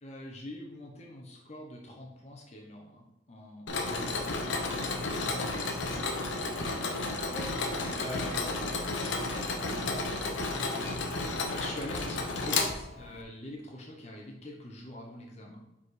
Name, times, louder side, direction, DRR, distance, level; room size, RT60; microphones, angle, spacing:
voice 1, 0.0-6.7 7.9-8.7 11.4-15.6, left 1 dB, 35° left, -1 dB, 0.8 m, -45 dB
Mechanisms, 3.7-13.2, left 3 dB, 80° left, 0.8 m, -32 dB
voice 2, 6.3-6.8 7.3-10.4, right 1 dB, 15° right, -4 dB, 1.4 m, -47 dB
5.0 x 4.1 x 4.7 m, 0.93 s
head